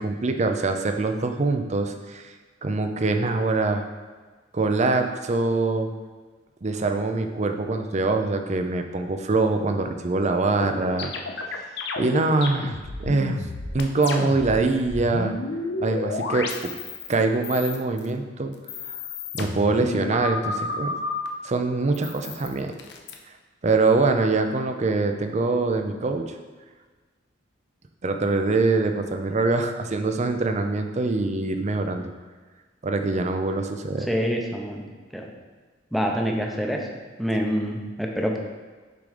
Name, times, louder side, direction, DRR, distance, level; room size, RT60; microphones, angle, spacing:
voice 1, 0.0-2.3 2.6-3.8 4.5-5.9 6.6-11.1 12.0-12.7 13.0-13.5 13.7-15.4 15.8-16.7 17.1-18.5 18.8-19.0 19.3-20.9 21.4-22.7 23.6-26.2 28.0-32.1 32.8-34.1, right 3 dB, 35° right, 6 dB, 0.5 m, -24 dB
sound 1, 10.6-14.6 14.8-17.1 17.4-18.1 18.5-21.3 21.9-23.1, left 3 dB, 65° left, 0.7 m, -31 dB
voice 2, 34.1-34.9 35.1-35.3 35.9-36.9 37.2-38.4, equal, ahead, 0 dB, 0.7 m, -26 dB
6.7 x 3.8 x 5.0 m, 1.4 s
head